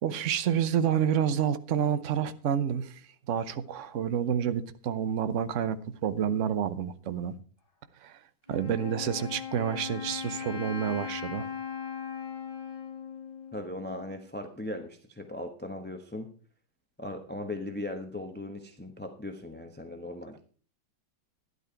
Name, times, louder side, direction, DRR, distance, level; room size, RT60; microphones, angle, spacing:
voice 1, 0.0-3.0 3.3-7.3 8.0-8.2 8.5-11.5, right 8 dB, 55° right, 0.9 m, -29 dB
Wind instrument woodwind instrument, 8.5-14.2, left 7 dB, 65° left, 3.5 m, -39 dB
voice 2, 13.5-16.3 17.0-20.4, left 1 dB, 10° left, 0.7 m, -38 dB
12.0 x 11.0 x 4.5 m
omnidirectional pair, 2.1 m